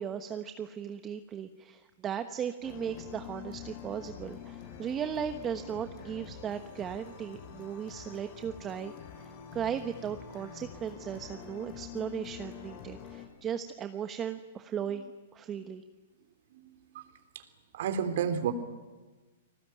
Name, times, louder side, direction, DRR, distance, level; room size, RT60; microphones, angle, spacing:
voice 1, 0.0-15.8, right 8 dB, 25° right, 8 dB, 1.2 m, -37 dB
sound 1, 2.6-13.3, left 8 dB, 50° left, 7.4 m, -46 dB
voice 2, 17.7-18.5, right 8 dB, 65° right, 9 dB, 3.4 m, -31 dB
29.5 x 20.0 x 9.4 m, 1.2 s
hypercardioid pair, 140°, 0 cm